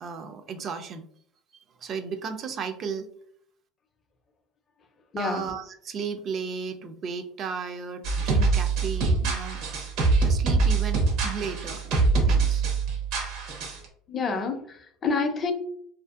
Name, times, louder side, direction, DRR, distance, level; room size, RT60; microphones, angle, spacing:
voice 1, 0.0-1.1 1.8-3.1 5.2-9.6 10.2-12.7, right 6 dB, 40° right, 7 dB, 0.3 m, -34 dB
voice 2, 5.1-5.5 14.1-15.5, left 4 dB, 35° left, 6 dB, 0.5 m, -28 dB
sound 1, 8.0-13.9, right 4 dB, 70° right, 0.7 m, -24 dB
2.5 x 2.4 x 2.3 m, 0.64 s
supercardioid pair, 110°, 0 cm